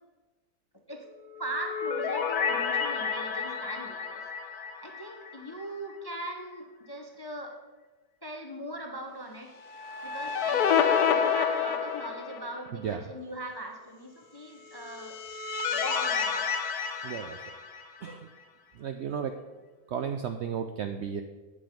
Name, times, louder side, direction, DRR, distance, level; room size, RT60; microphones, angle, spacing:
sound 1, 1.4-5.7 5.9-6.0 9.6-12.7 14.7-18.1, left 7 dB, 80° left, 1.3 m, -29 dB
voice 1, 1.4-4.2 4.8-7.5 8.2-9.5 10.0-15.2 15.7-16.5, right 1 dB, 25° left, 3 dB, 0.5 m, -40 dB
voice 2, 12.7-13.1 17.0-17.4 18.0-18.3 18.7-19.4 19.9-21.2, right 7 dB, 70° right, 7 dB, 0.6 m, -34 dB
8.7 x 7.8 x 5.1 m, 1.3 s
omnidirectional pair, 1.6 m